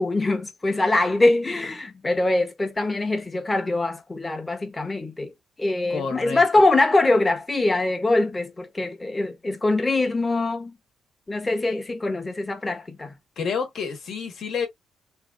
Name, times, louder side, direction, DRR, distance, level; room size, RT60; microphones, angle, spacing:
voice 1, 0.0-5.3 5.6-10.8 11.3-13.2, left 2 dB, 20° left, 1.0 m, -23 dB
voice 2, 5.9-6.6 13.4-14.7, left 5 dB, 60° left, 1.3 m, -29 dB
3.3 x 2.4 x 2.4 m
cardioid pair, 90°, 0 cm